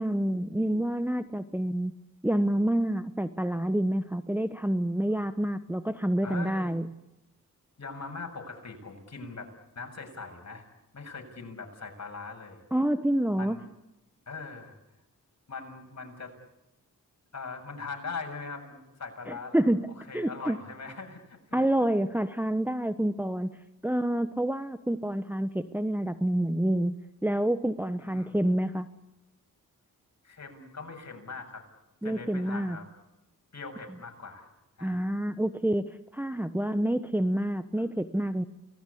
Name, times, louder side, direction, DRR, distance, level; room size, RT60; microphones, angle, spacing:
voice 1, 0.0-1.9 2.2-6.9 12.7-13.6 19.3-20.6 21.5-23.5 23.8-27.0 27.2-28.9 32.0-32.8 34.8-38.4, right 1 dB, 5° right, 10 dB, 1.1 m, -28 dB
voice 2, 6.2-6.8 7.8-9.5 9.8-10.6 10.9-12.6 13.4-13.6 14.3-14.8 15.5-16.3 17.3-19.7 20.0-21.6 28.0-28.4 30.2-31.6 32.0-32.9 33.5-34.5 34.8-35.1, left 4 dB, 50° left, 3 dB, 7.2 m, -41 dB
29.0 x 20.0 x 8.5 m, 0.93 s
cardioid pair, 75°, 34 cm